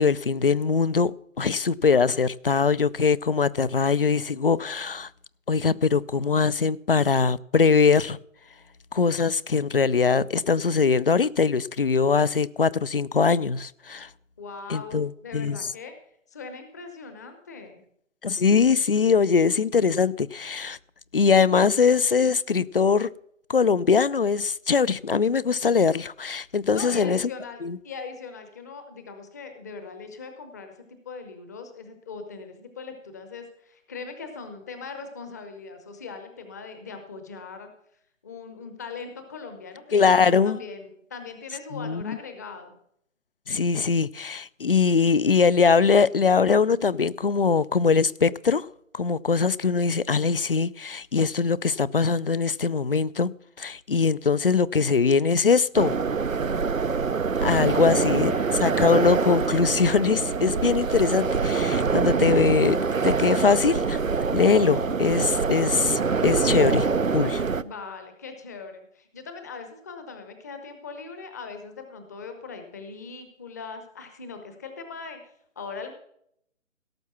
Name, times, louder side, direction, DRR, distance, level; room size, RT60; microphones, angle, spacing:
voice 1, 0.0-5.1 5.5-8.2 8.9-14.1 14.7-15.6 18.2-20.8 21.1-23.1 23.5-27.2 27.6-27.8 39.9-40.6 41.7-42.2 43.5-48.7 48.9-56.0 57.4-58.3 58.6-64.0 64.3-66.9 67.1-67.4, left 5 dB, 45° left, 0.5 m, -22 dB
voice 2, 14.4-15.9 16.3-17.8 26.7-30.7 31.0-37.7 38.2-42.8 57.7-58.9 64.4-64.8 67.6-75.9, left 4 dB, 15° left, 0.8 m, -40 dB
sound 1, 55.7-67.6, right 5 dB, 85° right, 0.8 m, -25 dB
17.0 x 7.1 x 5.8 m
figure-of-eight pair, 145°, 39 cm